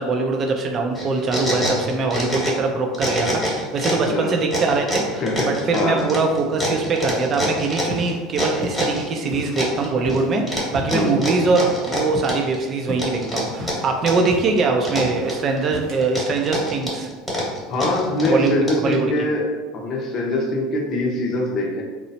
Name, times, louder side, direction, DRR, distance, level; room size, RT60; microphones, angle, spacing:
voice 1, 0.0-17.1 18.2-19.1, right 3 dB, 40° right, 3 dB, 0.4 m, -22 dB
sound 1, 0.9-2.7 2.9-4.1 4.5-9.0 9.6-10.2 10.5-12.6 13.0-14.3 14.6-15.6 16.0-18.9, equal, 10° left, 1.1 m, -26 dB
voice 2, 5.1-6.0 10.9-11.2 17.7-19.5 19.7-21.8, left 1 dB, 50° left, 0 dB, 0.6 m, -23 dB
sound 2, 7.5-8.2 8.5-9.6 10.0-12.6 12.9-13.2 13.5-16.2, equal, 60° right, 0.9 m, -35 dB
3.0 x 2.0 x 2.7 m, 1.3 s
supercardioid pair, 95°, 0 cm